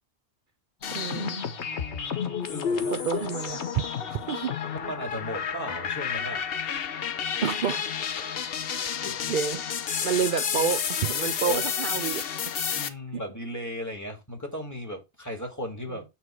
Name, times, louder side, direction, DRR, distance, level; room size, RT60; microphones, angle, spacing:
sound 1, 0.8-4.8, left 6 dB, 85° left, 1.4 m, -32 dB
sound 2, 0.8-1.7 2.2-12.9, left 8 dB, 60° left, 0.9 m, -31 dB
voice 1, 0.9-1.4 2.9-3.6 4.1-4.5 7.4-7.8 8.7-8.9 9.3-9.6 10.0-12.6 13.1-13.2 15.9-16.0, right 7 dB, 55° right, 0.7 m, -29 dB
voice 2, 1.7-3.0 4.7-6.5 8.2-9.3 11.4-11.6 12.7-16.0, equal, 15° left, 2.3 m, -37 dB
9.4 x 3.2 x 4.5 m
omnidirectional pair, 1.1 m